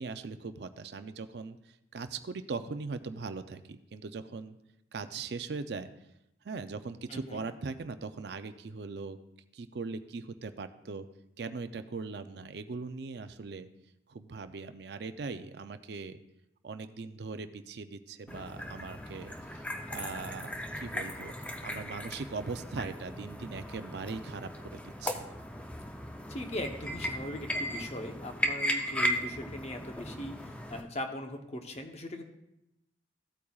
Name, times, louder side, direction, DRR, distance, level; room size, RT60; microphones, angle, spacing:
voice 1, 0.0-4.6 4.9-5.9 6.4-9.2 9.5-11.1 11.4-13.7 14.1-16.2 16.6-21.3 21.6-25.3, right 4 dB, 65° right, 10 dB, 0.5 m, -40 dB
voice 2, 7.1-7.5 26.3-32.2, left 1 dB, 35° left, 5 dB, 0.9 m, -40 dB
sound 1, 18.3-30.8, equal, 5° left, 0.5 m, -37 dB
15.0 x 8.4 x 2.4 m, 0.85 s
head